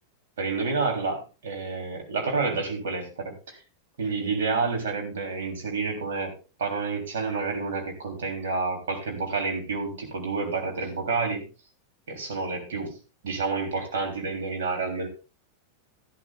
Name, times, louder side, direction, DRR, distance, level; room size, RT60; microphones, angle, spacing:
voice 1, 0.4-3.6 4.0-11.5 12.1-13.0 13.2-15.1, right 4 dB, 60° right, 2 dB, 3.4 m, -29 dB
15.0 x 11.5 x 2.5 m, 0.30 s
figure-of-eight pair, 90°, 0 cm